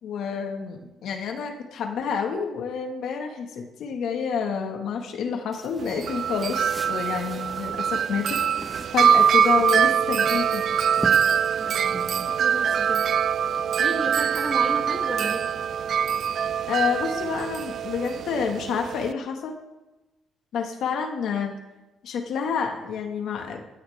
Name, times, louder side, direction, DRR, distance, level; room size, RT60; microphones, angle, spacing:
voice 1, 0.0-8.4 8.9-10.6 16.7-19.6 20.5-21.6 22.0-23.6, left 6 dB, 70° left, 3 dB, 1.9 m, -28 dB
sound 1, 5.5-13.6, equal, 5° right, 1.5 m, -42 dB
Wind chime, 5.8-19.1, right 8 dB, 55° right, 0.4 m, -23 dB
voice 2, 9.5-9.8 11.6-13.0 13.8-15.5, right 2 dB, 20° right, 0 dB, 2.8 m, -34 dB
16.0 x 12.5 x 3.6 m, 1.0 s
cardioid pair, 105°, 0 cm